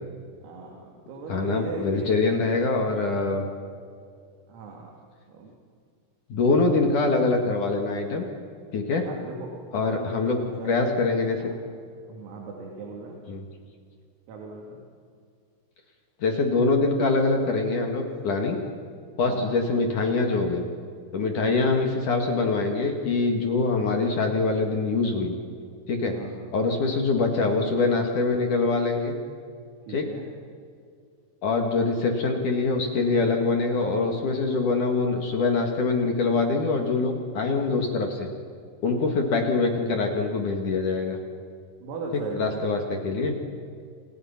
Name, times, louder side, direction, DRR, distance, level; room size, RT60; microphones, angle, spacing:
voice 1, 0.4-2.2 4.5-5.0 5.3-5.5 6.5-7.0 9.0-10.9 11.3-11.6 12.1-13.2 14.3-14.8 19.2-19.6 21.4-21.8 26.1-26.4 29.9-30.3 41.8-42.7, right 3 dB, 85° right, 0 dB, 5.4 m, -38 dB
voice 2, 1.3-3.4 6.3-8.3 8.7-9.1 9.7-10.4 10.6-11.5 13.3-13.4 16.2-18.6 19.2-20.7 21.1-25.3 25.9-26.2 26.5-29.2 29.9-30.1 31.4-38.3 38.8-41.2 42.4-43.3, left 3 dB, 50° left, 3 dB, 2.8 m, -24 dB
29.0 x 28.0 x 5.9 m, 2.3 s
omnidirectional pair, 5.9 m